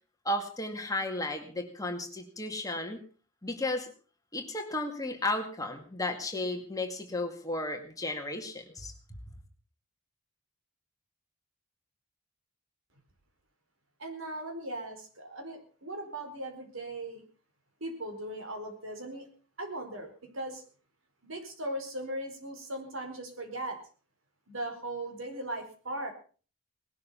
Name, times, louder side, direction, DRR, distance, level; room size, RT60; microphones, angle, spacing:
voice 1, 0.2-3.0 3.4-3.9 4.3-8.9, left 2 dB, 15° left, 4 dB, 2.1 m, -34 dB
voice 2, 14.0-17.2 17.8-19.3 19.6-20.6 21.2-23.8 24.5-26.1, right 1 dB, 65° right, 5 dB, 4.7 m, -38 dB
19.0 x 12.5 x 5.7 m, 0.40 s
head